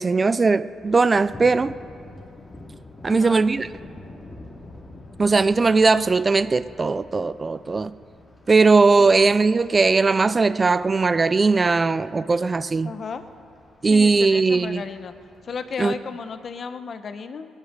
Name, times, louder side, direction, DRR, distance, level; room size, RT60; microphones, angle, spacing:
voice 1, 0.0-1.7 3.0-3.7 5.2-7.9 8.5-12.9 13.8-14.9 15.8-16.0, right 4 dB, 30° right, 15 dB, 0.4 m, -19 dB
Thunder, 0.6-16.5, left 2 dB, 25° left, 2.4 m, -47 dB
voice 2, 3.0-3.4 9.0-9.1 12.8-13.2 13.9-15.1 15.4-17.5, left 5 dB, 50° left, 10 dB, 0.9 m, -34 dB
20.0 x 10.5 x 6.7 m, 2.5 s
cardioid pair, 90°, 0 cm